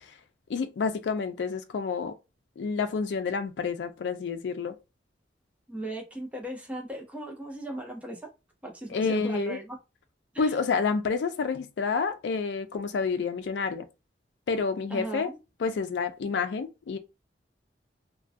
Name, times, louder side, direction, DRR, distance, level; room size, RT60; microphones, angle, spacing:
voice 1, 0.5-2.1 2.6-4.7 8.9-9.6 10.4-13.9 14.5-15.3 15.6-17.0, left 5 dB, 80° left, 0.4 m, -29 dB
voice 2, 5.7-8.3 8.6-9.8 10.3-10.6 14.9-15.4, right 1 dB, 10° right, 0.6 m, -37 dB
2.2 x 2.2 x 2.5 m
head